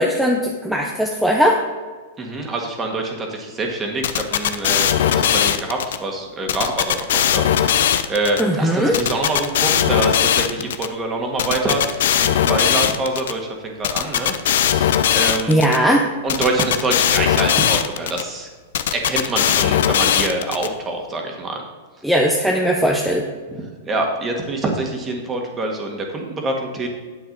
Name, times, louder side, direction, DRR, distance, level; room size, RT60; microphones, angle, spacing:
voice 1, 0.0-1.6 8.4-9.0 15.5-16.1 22.0-23.3, equal, ahead, 0 dB, 0.8 m, -18 dB
voice 2, 2.2-15.6 16.2-18.5 18.9-21.6 23.5-26.9, right 2 dB, 20° right, 2 dB, 1.7 m, -25 dB
sound 1, 4.0-6.0 6.5-8.4 8.9-10.9 11.4-13.3 13.8-15.8 16.3-18.2 18.7-20.7, left 10 dB, 75° left, 0.6 m, -19 dB
9.2 x 7.8 x 4.0 m, 1.4 s
hypercardioid pair, 140°, 0 cm